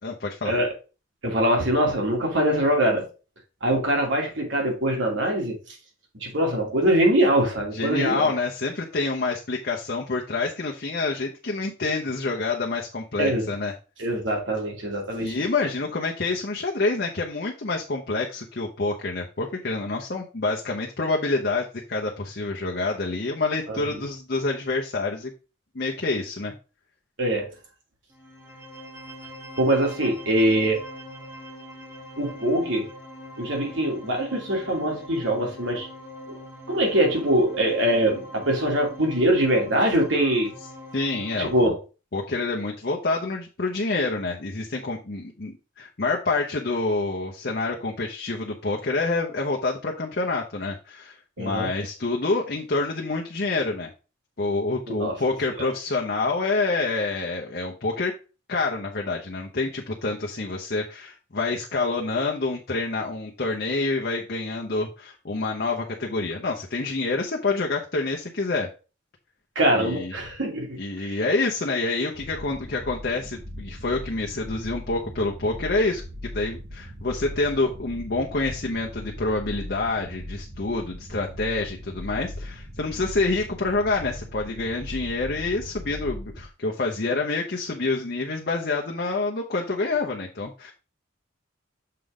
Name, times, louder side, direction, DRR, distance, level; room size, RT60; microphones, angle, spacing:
voice 1, 0.0-0.6 7.7-13.7 15.2-25.3 25.7-26.5 40.9-41.7 42.1-53.9 54.4-58.2 58.5-68.7 69.7-70.1 70.8-90.7, left 3 dB, 50° left, 0.9 m, -27 dB
voice 2, 1.2-3.1 3.6-5.6 6.1-8.3 13.2-13.5 14.0-15.4 23.7-24.0 27.2-27.5 29.6-30.9 32.2-32.9 33.4-35.9 36.3-36.4 36.7-40.6 41.4-41.8 51.4-51.7 54.9-55.2 55.6-55.7 69.5-71.2, right 1 dB, 75° right, 2.7 m, -23 dB
sound 1, 28.1-41.7, equal, 10° right, 1.6 m, -43 dB
sound 2, 72.1-86.5, left 1 dB, 55° right, 1.2 m, -39 dB
6.7 x 3.8 x 4.9 m
head